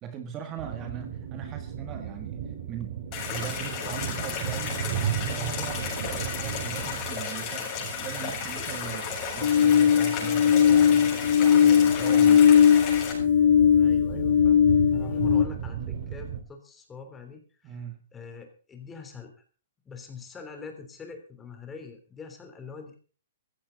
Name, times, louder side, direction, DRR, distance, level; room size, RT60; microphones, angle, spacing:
voice 1, 0.0-3.0 3.3-9.1 9.3-12.6 15.0-15.1 17.6-18.0, right 8 dB, 25° right, 6 dB, 1.7 m, -40 dB
sound 1, 0.6-16.4, right 9 dB, 50° right, 2.2 m, -36 dB
sound 2, 3.1-13.1, left 6 dB, 30° left, 7.7 m, -34 dB
sound 3, 9.4-15.5, left 8 dB, 70° left, 0.8 m, -19 dB
voice 2, 13.8-14.6 14.9-17.8 18.1-19.4 19.8-23.0, left 5 dB, 15° left, 6 dB, 3.4 m, -44 dB
15.0 x 15.0 x 4.0 m, 0.39 s
hypercardioid pair, 145°, 0 cm